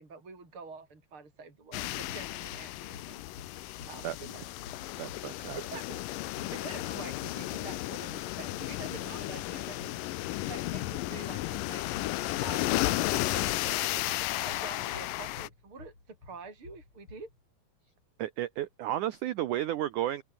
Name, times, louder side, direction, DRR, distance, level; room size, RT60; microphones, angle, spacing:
voice 1, 0.0-3.3 3.8-4.4 5.5-6.0 6.5-10.0 10.5-12.1 12.4-14.0 14.5-17.3, right 4 dB, 30° right, 6.4 m, -46 dB
sound 1, 1.7-15.5, left 17 dB, 80° left, 2.0 m, -34 dB
sound 2, 2.1-17.4, left 3 dB, 30° left, 5.8 m, -54 dB
voice 2, 5.0-5.6 18.2-20.2, right 13 dB, 90° right, 1.7 m, -32 dB
open air
omnidirectional pair, 4.8 m